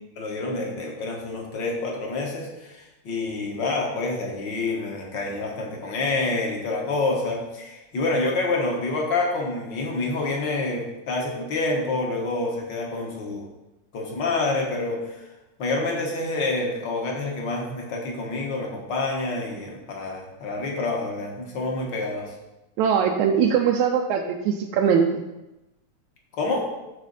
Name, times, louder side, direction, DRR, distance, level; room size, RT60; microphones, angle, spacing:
voice 1, 0.2-13.5 13.9-15.3 15.6-22.3 26.3-26.7, left 3 dB, 50° left, 0 dB, 1.5 m, -27 dB
voice 2, 22.8-25.2, right 7 dB, 85° right, 2 dB, 2.0 m, -21 dB
12.5 x 4.2 x 4.1 m, 0.97 s
omnidirectional pair, 3.3 m